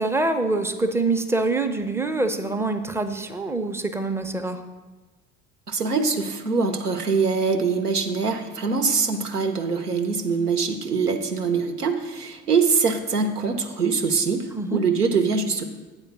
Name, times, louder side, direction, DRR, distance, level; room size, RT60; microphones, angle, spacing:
voice 1, 0.0-4.6 14.5-14.8, right 2 dB, 5° right, 6 dB, 0.5 m, -25 dB
voice 2, 5.7-15.6, right 5 dB, 90° right, 5 dB, 0.7 m, -23 dB
8.3 x 4.4 x 6.6 m, 1.2 s
figure-of-eight pair, 65°, 45 cm